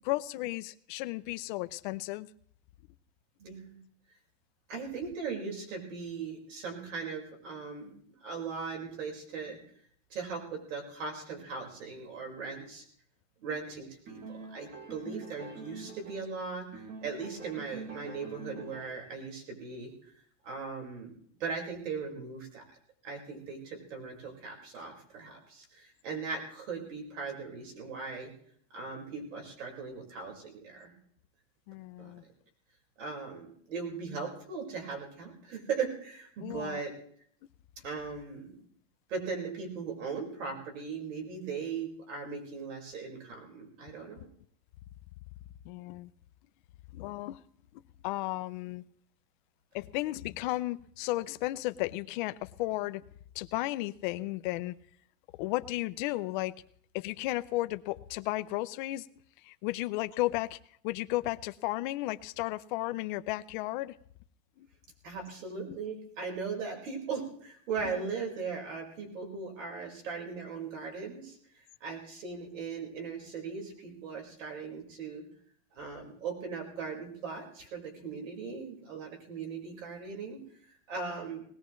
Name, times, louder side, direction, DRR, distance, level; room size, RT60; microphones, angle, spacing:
voice 1, 0.0-2.3 15.1-15.3 31.7-32.2 36.4-36.8 45.6-46.1 46.9-47.4 47.7-48.8 49.7-53.0 53.3-54.8 55.4-56.6 56.9-59.1 59.4-60.6 60.8-63.9 64.6-64.7 65.7-65.8, left 18 dB, 40° left, 12 dB, 0.5 m, -34 dB
voice 2, 3.4-3.8 4.7-9.6 10.1-12.8 13.4-19.9 20.4-21.1 21.4-22.6 23.0-28.3 28.7-30.9 32.0-32.1 33.0-36.9 37.8-38.7 39.1-44.3 65.0-71.4 71.8-75.2 75.7-80.4 80.9-81.4, right 5 dB, 80° right, 1 dB, 4.9 m, -39 dB
sound 1, 14.1-16.4 16.7-19.2, right 4 dB, 40° right, 1.7 m, -46 dB
19.5 x 18.0 x 3.1 m, 0.63 s
supercardioid pair, 175°, 38 cm